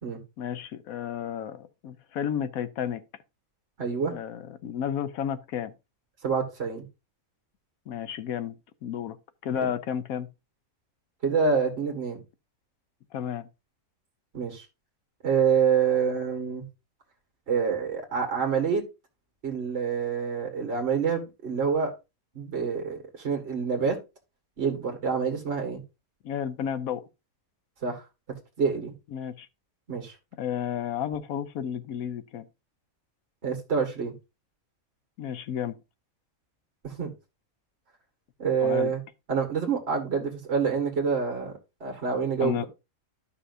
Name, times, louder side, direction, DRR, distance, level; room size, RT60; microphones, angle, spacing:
voice 1, 0.4-3.0 4.1-5.7 7.9-8.5 8.8-9.2 9.4-10.3 13.1-13.5 26.2-27.0 29.1-29.5 30.4-32.5 35.2-35.8 38.6-38.9 42.4-42.6, left 9 dB, 80° left, 1.2 m, -32 dB
voice 2, 3.8-4.1 6.2-6.8 11.2-12.2 14.3-14.6 15.2-16.7 17.5-18.8 19.4-21.9 22.3-24.0 24.6-25.8 27.8-28.0 28.6-28.9 29.9-30.1 33.4-34.1 36.8-37.1 38.4-39.0 39.3-42.6, right 6 dB, 50° right, 2.0 m, -27 dB
12.5 x 5.7 x 2.6 m
omnidirectional pair, 1.5 m